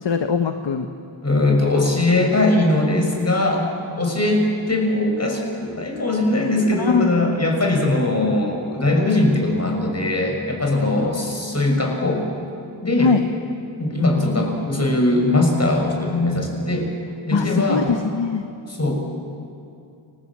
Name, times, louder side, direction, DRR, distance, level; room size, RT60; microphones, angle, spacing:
voice 1, 0.0-0.9 6.8-7.4 13.0-13.2 17.3-18.4, left 5 dB, 60° left, 6 dB, 1.4 m, -21 dB
voice 2, 1.2-3.6 4.0-12.2 12.8-13.1 13.8-16.9 17.3-17.9 18.7-18.9, left 2 dB, 30° left, 1 dB, 6.8 m, -20 dB
29.0 x 20.5 x 8.9 m, 2.6 s
cardioid pair, 65°, 49 cm